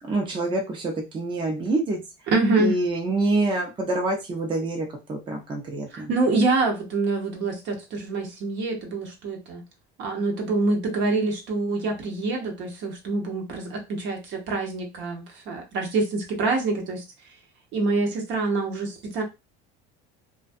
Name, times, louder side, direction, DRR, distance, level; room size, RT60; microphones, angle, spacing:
voice 1, 0.0-2.0 2.6-6.1, right 2 dB, 25° right, 1 dB, 0.7 m, -26 dB
voice 2, 2.3-2.7 5.9-9.6 10.0-17.0 17.7-19.2, right 3 dB, 60° right, 2 dB, 0.9 m, -26 dB
2.4 x 2.3 x 2.5 m, 0.25 s
cardioid pair, 125°, 21 cm